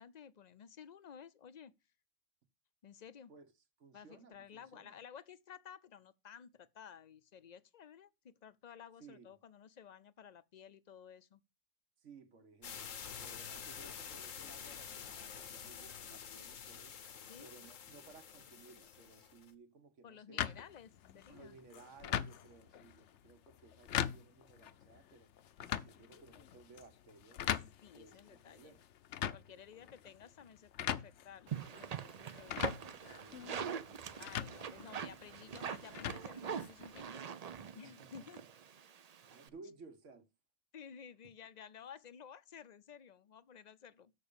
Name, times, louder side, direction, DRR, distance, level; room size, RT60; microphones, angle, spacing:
voice 1, 0.0-1.7 2.8-3.3 3.9-11.4 13.5-13.8 17.2-17.5 20.0-21.6 27.8-28.7 29.3-32.0 32.3-32.7 34.2-37.2 37.7-38.4 40.7-44.1, left 8 dB, 50° left, 0.5 m, -54 dB
voice 2, 3.8-4.9 9.0-9.3 12.0-17.0 17.4-20.6 21.3-25.3 25.6-27.5 27.9-28.9 29.5-30.1 32.8-34.2 37.8-38.5 39.3-40.3, right 4 dB, 70° right, 1.6 m, -59 dB
sound 1, 12.6-19.5, left 7 dB, 85° left, 1.4 m, -48 dB
sound 2, 20.4-37.0, left 10 dB, 70° left, 1.0 m, -42 dB
sound 3, 31.5-39.5, right 7 dB, 50° right, 0.5 m, -43 dB
6.9 x 6.7 x 6.8 m
omnidirectional pair, 1.3 m